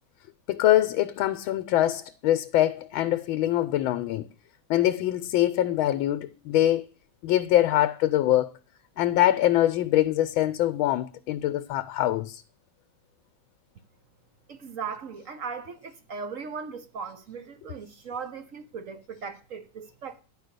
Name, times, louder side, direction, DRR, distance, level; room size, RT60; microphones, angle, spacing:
voice 1, 0.5-4.3 4.7-6.9 7.2-8.5 9.0-12.4, left 13 dB, 80° left, 1.4 m, -24 dB
voice 2, 14.5-20.2, right 5 dB, 55° right, 1.0 m, -38 dB
10.0 x 5.2 x 6.6 m
omnidirectional pair, 2.2 m